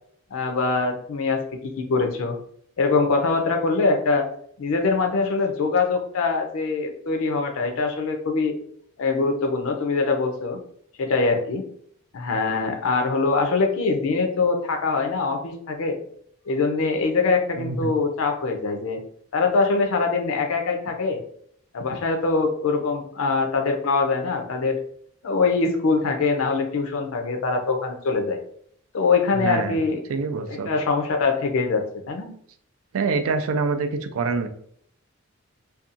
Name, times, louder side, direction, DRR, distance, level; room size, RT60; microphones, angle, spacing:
voice 1, 0.3-2.4 2.8-4.3 4.6-8.5 9.0-10.6 11.0-11.6 12.1-16.0 16.5-19.0 19.3-21.2 21.7-24.8 25.2-28.4 28.9-30.0 30.5-32.3, left 4 dB, 70° left, 4 dB, 0.4 m, -23 dB
voice 2, 17.6-17.9 29.4-29.8 30.1-30.7 32.9-34.5, right 4 dB, 75° right, 8 dB, 0.3 m, -25 dB
2.7 x 2.2 x 2.5 m, 0.65 s
head